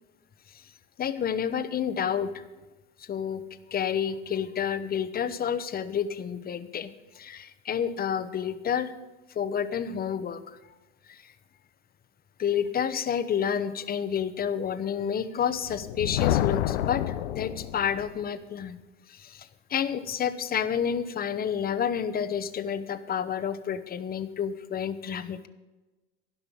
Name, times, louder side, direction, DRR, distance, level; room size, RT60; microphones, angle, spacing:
voice 1, 1.0-2.3 3.1-3.4 3.7-8.9 9.3-10.4 11.1-11.3 12.4-18.8 19.1-25.5, left 8 dB, 30° left, 12 dB, 1.0 m, -30 dB
Thunder, 15.6-18.2, left 13 dB, 75° left, 0.7 m, -28 dB
15.5 x 5.7 x 8.6 m, 1.1 s
hypercardioid pair, 85°, 32 cm